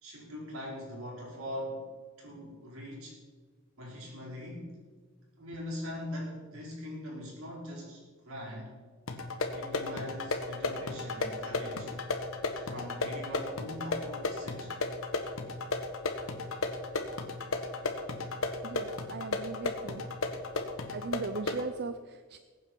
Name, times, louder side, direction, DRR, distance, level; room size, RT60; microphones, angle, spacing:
voice 1, 0.0-1.9 2.2-3.2 3.8-4.8 5.4-8.7 9.5-11.9 12.6-14.7, equal, 75° right, -2 dB, 4.9 m, -41 dB
sound 1, 9.1-21.7, left 3 dB, 70° left, 1.5 m, -35 dB
voice 2, 18.6-20.0 20.9-22.4, right 4 dB, 50° right, 10 dB, 0.6 m, -38 dB
20.5 x 8.7 x 4.6 m, 1.5 s
head